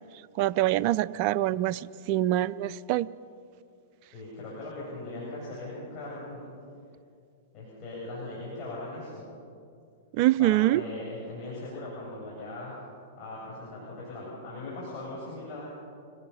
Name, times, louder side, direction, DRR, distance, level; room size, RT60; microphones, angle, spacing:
voice 1, 0.4-3.1 10.1-10.8, right 15 dB, 50° right, 16 dB, 0.5 m, -25 dB
voice 2, 4.1-6.4 7.5-9.2 10.4-12.8 13.2-15.7, left 2 dB, 35° left, -6 dB, 7.4 m, -39 dB
26.5 x 17.5 x 5.7 m, 2.4 s
hypercardioid pair, 115°, 0 cm